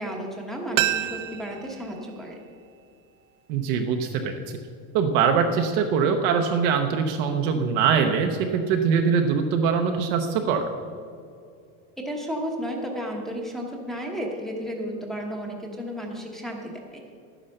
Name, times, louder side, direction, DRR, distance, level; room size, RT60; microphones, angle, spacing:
voice 1, 0.0-2.4 12.0-17.1, equal, ahead, -1 dB, 1.0 m, -33 dB
sound 1, 0.7-3.5 3.8-3.9, right 13 dB, 85° right, 0.9 m, -31 dB
voice 2, 3.5-4.3 4.9-10.7, right 6 dB, 40° right, 5 dB, 0.8 m, -22 dB
11.5 x 10.0 x 6.5 m, 2.4 s
supercardioid pair, 180°, 38 cm